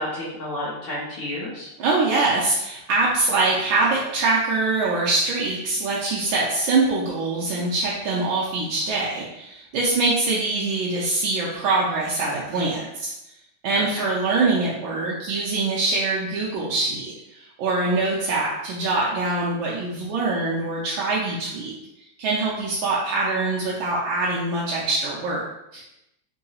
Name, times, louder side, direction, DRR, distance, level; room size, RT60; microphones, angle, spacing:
voice 1, 0.0-1.7 13.7-14.1, left 1 dB, 65° left, -6 dB, 0.7 m, -31 dB
voice 2, 1.8-13.1 13.6-21.7 22.2-25.4 25.7-25.8, right 3 dB, 80° right, -5 dB, 1.4 m, -23 dB
3.8 x 2.7 x 2.8 m, 0.87 s
omnidirectional pair, 2.2 m